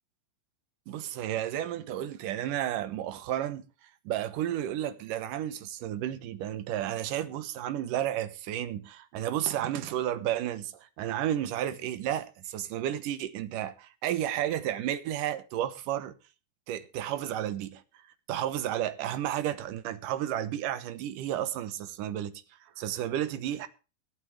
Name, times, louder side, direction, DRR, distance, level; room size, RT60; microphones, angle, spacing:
voice 1, 0.9-3.7 4.1-16.1 16.7-17.8 18.3-23.7, right 11 dB, 70° right, 2.6 m, -32 dB
23.0 x 8.5 x 3.3 m
omnidirectional pair, 4.2 m